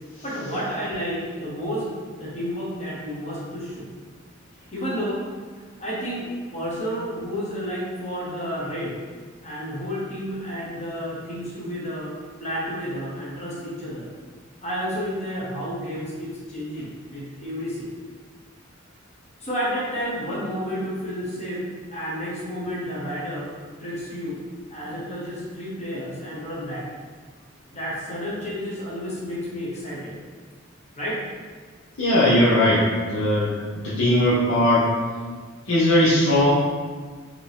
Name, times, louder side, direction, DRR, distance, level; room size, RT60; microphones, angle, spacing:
voice 1, 0.2-1.9 2.1-3.9 4.7-5.2 5.8-9.0 9.4-12.1 12.4-14.1 14.6-17.8 19.4-21.6 21.9-23.5 23.8-24.4 24.7-26.8 27.7-30.1 30.9-31.2, equal, 35° left, -7 dB, 1.1 m, -31 dB
voice 2, 32.0-33.5 33.8-34.9 35.7-36.5, left 1 dB, 80° left, -9 dB, 1.0 m, -19 dB
5.0 x 2.9 x 3.5 m, 1.5 s
head